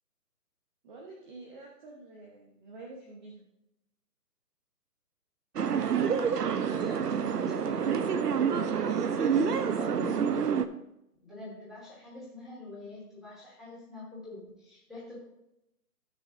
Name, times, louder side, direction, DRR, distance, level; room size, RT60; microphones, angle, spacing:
voice 1, 0.8-3.4, right 2 dB, 30° right, -2 dB, 1.1 m, -48 dB
sound 1, 5.6-10.7, right 7 dB, 75° right, 0.9 m, -28 dB
voice 2, 5.8-8.0 8.6-10.4 11.2-15.2, left 2 dB, ahead, -8 dB, 2.9 m, -45 dB
15.0 x 6.4 x 2.6 m, 0.85 s
hypercardioid pair, 150°, 48 cm